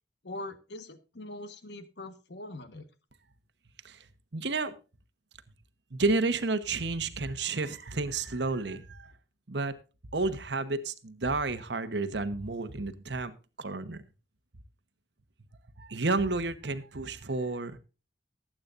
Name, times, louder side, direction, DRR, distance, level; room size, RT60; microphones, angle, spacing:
voice 1, 0.2-2.9, left 2 dB, 65° left, 11 dB, 1.4 m, -42 dB
voice 2, 4.3-4.7 5.9-9.1 9.5-9.7 10.1-13.3 13.6-14.0 15.8-17.8, right 3 dB, 70° right, 10 dB, 1.1 m, -31 dB
19.0 x 8.7 x 2.5 m, 0.31 s
head